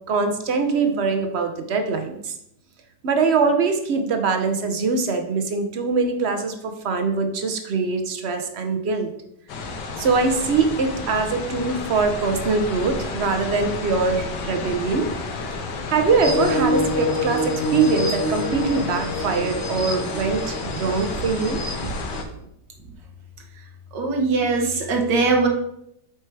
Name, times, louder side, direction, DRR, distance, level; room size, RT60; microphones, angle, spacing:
voice 1, 0.1-2.3 3.0-9.1 10.0-15.1 15.9-21.6, right 4 dB, 55° right, 7 dB, 0.7 m, -23 dB
sound 1, 9.5-22.2, left 3 dB, 75° left, 1.5 m, -31 dB
sound 2, 16.2-22.2, left 1 dB, 10° left, 1.4 m, -27 dB
voice 2, 23.9-25.5, right 3 dB, 75° right, 2 dB, 1.7 m, -21 dB
6.6 x 4.6 x 4.6 m, 0.75 s
omnidirectional pair, 2.0 m